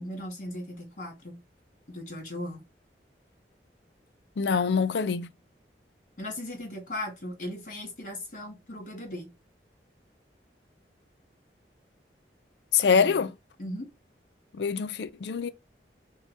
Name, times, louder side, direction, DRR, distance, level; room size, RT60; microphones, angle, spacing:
voice 1, 0.0-1.4 1.9-2.6 6.2-9.3 13.0-13.3 13.6-13.9, left 1 dB, 45° left, 1.9 m, -38 dB
voice 2, 4.4-5.3 12.7-13.3 14.5-15.5, left 6 dB, 80° left, 0.4 m, -24 dB
5.4 x 2.2 x 3.4 m
head